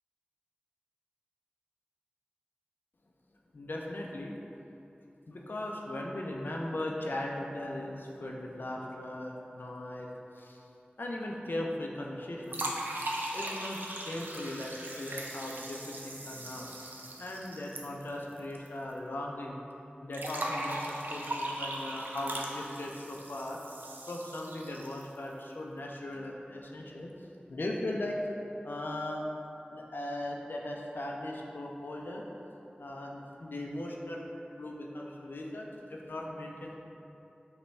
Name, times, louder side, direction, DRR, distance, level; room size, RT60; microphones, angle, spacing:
voice 1, 3.5-4.3 5.3-10.1 10.3-10.6 11.0-12.7 13.3-16.7 17.2-19.6 20.0-23.6 24.1-28.2 28.6-29.2 29.7-32.3 32.8-36.8, left 1 dB, 80° left, -1 dB, 0.4 m, -38 dB
sound 1, 12.5-18.7 18.9-19.0 20.1-25.2, right 1 dB, 75° right, 0.4 m, -39 dB
5.2 x 2.2 x 3.2 m, 2.9 s
wide cardioid pair, 50°, 3 cm